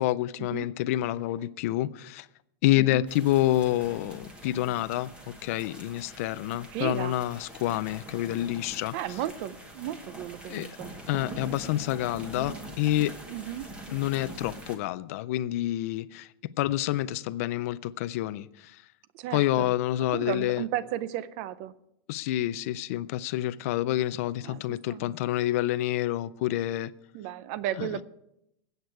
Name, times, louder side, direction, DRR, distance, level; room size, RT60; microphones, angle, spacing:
voice 1, 0.0-2.3 2.6-8.9 10.5-10.7 11.1-13.1 13.9-16.3 16.6-18.8 19.3-20.6 22.1-26.9 27.8-27.9, left 14 dB, 35° left, 0.4 m, -28 dB
voice 2, 2.8-3.1 6.3-6.4 6.7-7.2 8.9-10.9 13.3-13.7 19.1-19.7 20.1-21.7 24.4-24.6 24.9-25.1 27.1-28.0, right 12 dB, 30° right, 0.5 m, -34 dB
sound 1, 3.1-14.8, right 1 dB, 10° right, 1.1 m, -44 dB
20.0 x 8.0 x 4.6 m
supercardioid pair, 180°, 13 cm